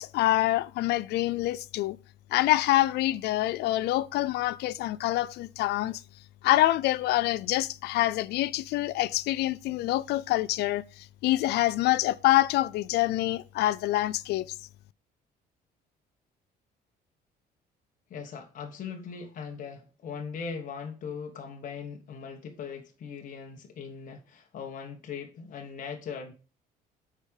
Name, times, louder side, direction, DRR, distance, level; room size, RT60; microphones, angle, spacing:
voice 1, 0.0-2.0 2.3-6.0 6.4-14.5, left 15 dB, 80° left, 0.5 m, -26 dB
voice 2, 18.1-26.3, left 6 dB, 50° left, 1.5 m, -39 dB
8.2 x 5.1 x 6.5 m
cardioid pair, 110°, 17 cm